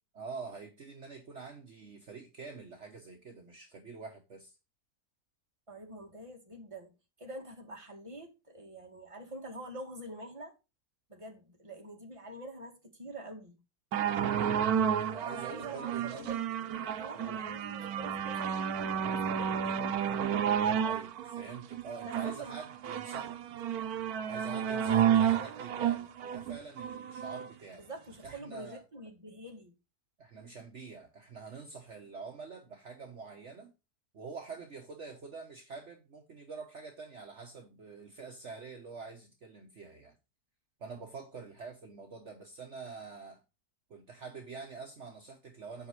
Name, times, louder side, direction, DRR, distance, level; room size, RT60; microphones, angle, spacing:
voice 1, 0.1-4.6 15.1-16.4 17.1-17.4 20.8-23.4 24.3-27.9 28.2-28.8 30.2-33.7 34.1-40.2 40.8-43.4 43.9-45.9, right 4 dB, 50° right, 1.4 m, -46 dB
voice 2, 5.7-10.6 11.1-13.6 15.3-18.5 19.2-20.0 22.0-22.5 25.4-25.6 27.7-29.7, right 1 dB, 20° right, 2.0 m, -46 dB
sound 1, 13.9-27.5 28.2-28.3, right 8 dB, 75° right, 1.2 m, -31 dB
8.6 x 5.5 x 4.7 m
omnidirectional pair, 1.7 m